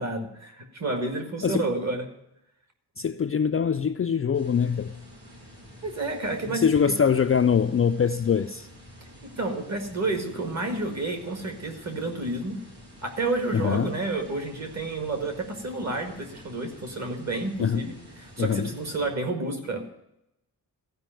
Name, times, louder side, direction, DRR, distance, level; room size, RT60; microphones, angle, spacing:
voice 1, 0.0-2.1 5.8-7.0 9.4-12.6 13.0-19.9, right 2 dB, 40° right, 4 dB, 1.9 m, -30 dB
voice 2, 3.0-4.9 6.5-8.7 13.5-13.9 17.6-17.8 18.4-18.7, left 7 dB, 35° left, 7 dB, 0.4 m, -23 dB
sound 1, 4.3-19.1, equal, 85° right, 5.5 m, -49 dB
15.0 x 5.3 x 9.0 m, 0.86 s
wide cardioid pair, 175°, 39 cm